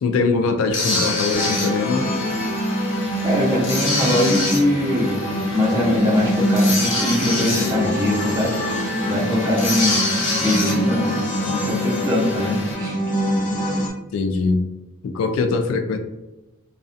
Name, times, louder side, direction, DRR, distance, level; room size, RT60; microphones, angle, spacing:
voice 1, 0.0-2.1 14.1-14.7 15.0-16.0, left 4 dB, 90° left, 6 dB, 0.3 m, -22 dB
sound 1, 0.7-12.7, left 2 dB, 70° left, 0.8 m, -27 dB
sound 2, 1.3-13.9, equal, 35° left, 0.6 m, -24 dB
voice 2, 3.2-13.0, left 1 dB, 15° right, -5 dB, 0.6 m, -22 dB
2.4 x 2.1 x 2.5 m, 0.96 s
head